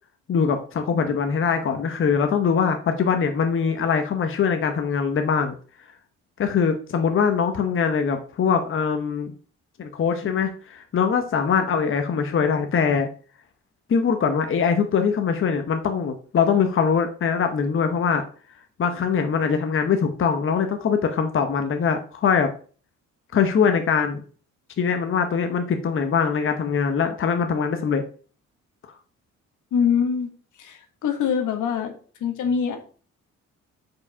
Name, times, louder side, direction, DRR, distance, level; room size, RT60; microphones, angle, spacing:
voice 1, 0.3-5.5 6.4-9.3 9.8-13.1 13.9-18.2 18.8-22.5 23.3-24.2 24.8-28.0, left 6 dB, 45° left, 6 dB, 0.9 m, -22 dB
voice 2, 29.7-30.3 30.6-31.9 32.2-32.8, left 7 dB, 80° left, 5 dB, 1.3 m, -23 dB
4.8 x 4.7 x 5.4 m, 0.42 s
cardioid pair, 90°, 30 cm